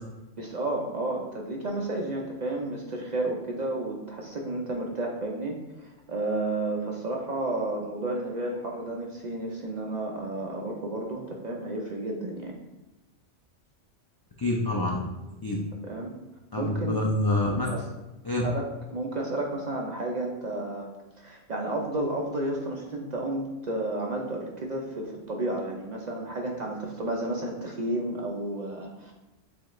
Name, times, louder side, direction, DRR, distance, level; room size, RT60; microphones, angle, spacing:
voice 1, 0.4-12.6 15.8-16.1 16.6-17.0 17.7-17.8 18.4-20.9 21.2-29.1, right 2 dB, 50° right, 0 dB, 0.5 m, -32 dB
voice 2, 14.4-15.0 15.4-15.6 16.5-17.7 18.2-18.4, left 1 dB, 40° left, -3 dB, 0.3 m, -26 dB
7.1 x 2.4 x 3.0 m, 1.0 s
omnidirectional pair, 1.2 m